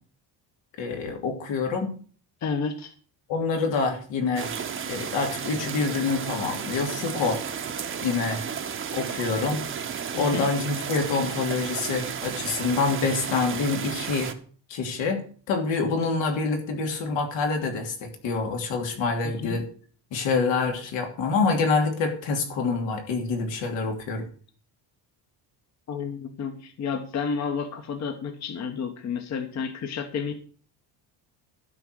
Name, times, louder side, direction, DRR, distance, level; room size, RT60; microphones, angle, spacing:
voice 1, 0.8-1.9 3.3-4.5 4.9-7.4 8.0-8.5 8.9-9.6 10.1-14.3 14.7-19.6 20.1-24.3, left 4 dB, 85° left, 3 dB, 2.9 m, -26 dB
voice 2, 2.4-2.9 10.1-10.5 19.2-19.6 25.9-30.3, left 6 dB, 40° left, 7 dB, 1.1 m, -31 dB
sound 1, 4.4-14.3, right 7 dB, 30° right, 0.9 m, -33 dB
12.0 x 5.0 x 7.7 m, 0.43 s
cardioid pair, 175°, 43 cm